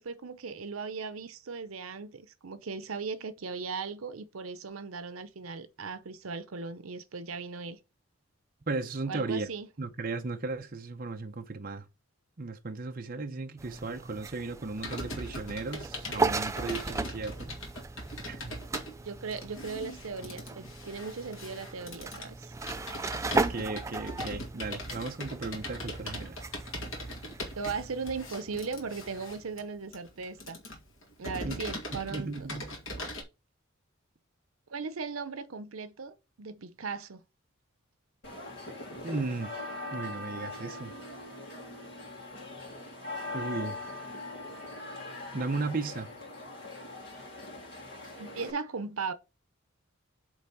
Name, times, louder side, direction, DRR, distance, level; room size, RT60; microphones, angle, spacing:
voice 1, 0.0-7.8 9.1-9.7 19.0-22.5 27.5-30.6 31.2-32.3 34.7-37.2 48.2-49.1, right 4 dB, 85° right, 0.8 m, -38 dB
voice 2, 8.7-9.5 9.8-11.9 12.4-17.6 18.2-18.6 23.3-26.4 31.4-31.6 32.1-32.7 39.0-39.6 39.9-40.9 43.3-43.8 45.3-46.1, right 3 dB, 45° right, 0.8 m, -35 dB
sound 1, 13.6-29.6, right 3 dB, 15° right, 0.3 m, -37 dB
Computer keyboard, 14.8-33.2, left 1 dB, 70° left, 2.0 m, -41 dB
sound 2, 38.2-48.5, left 2 dB, 55° left, 2.0 m, -41 dB
8.1 x 3.4 x 5.5 m
head